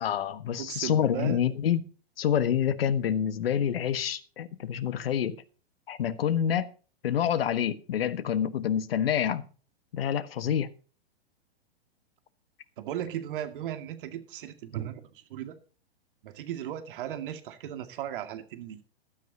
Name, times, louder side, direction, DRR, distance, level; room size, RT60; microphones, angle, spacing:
voice 1, 0.0-1.9 2.2-5.4 5.9-6.7 7.0-9.4 9.9-10.7, left 9 dB, 65° left, 1.5 m, -27 dB
voice 2, 0.6-1.4 12.8-15.6 16.2-18.8, right 11 dB, 55° right, 2.2 m, -36 dB
15.5 x 12.5 x 2.8 m
hypercardioid pair, 110°, 31 cm